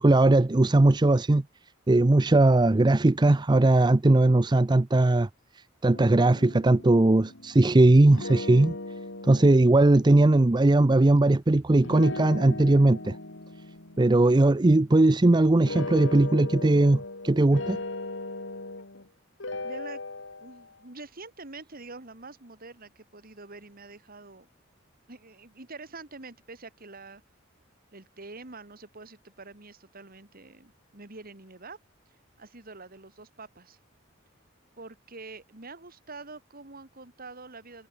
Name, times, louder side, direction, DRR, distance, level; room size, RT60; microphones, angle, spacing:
voice 1, 0.0-1.4 1.9-5.3 5.5-8.8 9.2-13.2 14.0-17.8, right 2 dB, 20° right, 0.5 m, -19 dB
sound 1, 5.9-7.8 8.1-10.6 11.8-15.2 15.6-19.1 19.4-20.7, left 2 dB, 65° left, 2.8 m, -38 dB
voice 2, 19.6-20.0 20.4-24.5 25.1-27.2 27.9-31.8 32.4-33.8 34.8-37.9, right 3 dB, 50° right, 2.5 m, -45 dB
head